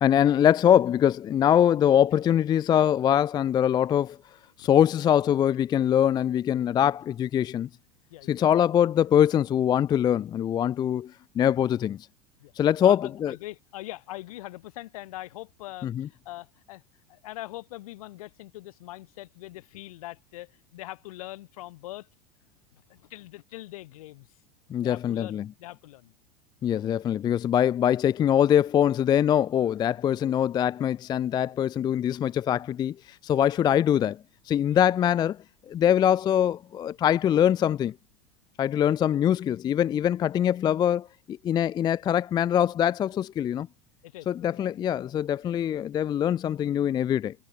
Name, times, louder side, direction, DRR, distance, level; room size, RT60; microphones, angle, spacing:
voice 1, 0.0-4.2 4.6-7.7 8.3-12.1 12.6-13.3 15.8-16.1 24.7-25.5 26.6-35.4 35.7-37.9 38.6-43.7 44.3-47.3, left 10 dB, 20° left, 0.4 m, -23 dB
voice 2, 12.8-16.8 17.1-22.1 22.9-24.3 24.8-26.1 26.7-27.0 33.4-33.7 34.7-34.8 38.8-38.9 44.0-44.6, left 17 dB, 65° left, 5.0 m, -42 dB
hypercardioid pair, 85°, 20 cm